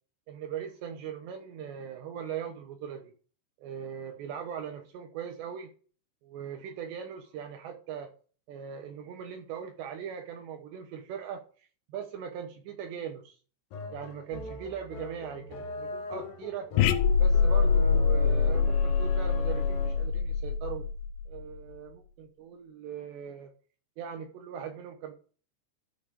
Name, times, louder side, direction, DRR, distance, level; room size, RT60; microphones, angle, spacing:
voice 1, 0.3-3.1 3.6-5.7 6.2-8.1 8.5-11.4 11.9-13.4 13.9-16.7 17.2-20.9 21.3-23.5 24.0-25.1, right 8 dB, 75° right, 5 dB, 3.1 m, -40 dB
sound 1, 13.7-20.2, left 4 dB, 65° left, 2.7 m, -40 dB
sound 2, 16.8-21.4, left 5 dB, 85° left, 3.1 m, -24 dB
13.0 x 5.5 x 5.2 m, 0.40 s
omnidirectional pair, 5.2 m